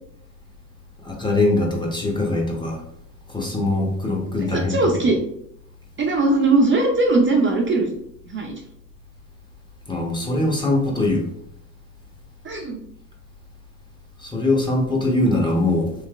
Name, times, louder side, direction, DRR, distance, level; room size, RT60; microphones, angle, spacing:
voice 1, 1.0-2.8 3.3-4.9 9.9-11.3 14.2-15.9, left 2 dB, 10° left, -1 dB, 0.8 m, -22 dB
voice 2, 4.4-5.2 6.0-7.9 8.3-8.6 12.4-12.8, right 2 dB, 30° right, 0 dB, 0.6 m, -19 dB
3.2 x 2.7 x 2.3 m, 0.73 s
supercardioid pair, 80°, 41 cm